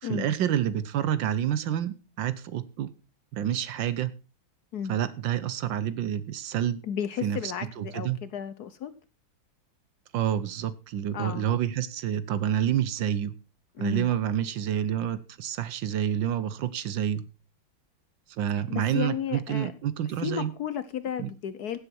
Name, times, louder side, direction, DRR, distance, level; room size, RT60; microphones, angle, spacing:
voice 1, 0.0-2.9 3.3-4.1 4.9-6.8 7.2-8.2 10.1-13.3 13.8-17.3 18.4-20.5 21.2-21.3, right 10 dB, 70° right, 15 dB, 1.4 m, -28 dB
voice 2, 6.8-8.9 11.1-11.5 13.8-14.1 18.7-19.7 20.2-21.8, left 9 dB, 60° left, 13 dB, 1.1 m, -33 dB
16.5 x 7.7 x 4.4 m, 0.32 s
omnidirectional pair, 2.2 m